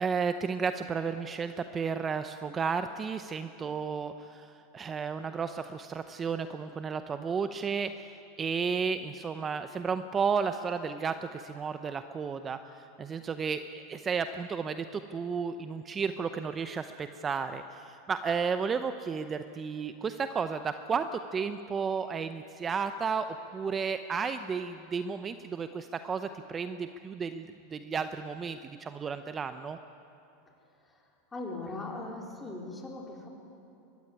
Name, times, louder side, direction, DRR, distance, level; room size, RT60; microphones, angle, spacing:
voice 1, 0.0-23.3 23.5-29.8, right 5 dB, 25° right, 10 dB, 0.7 m, -33 dB
voice 2, 31.3-33.3, left 2 dB, 15° left, 0 dB, 4.1 m, -39 dB
22.5 x 15.5 x 9.8 m, 2.7 s
supercardioid pair, 120°, 0 cm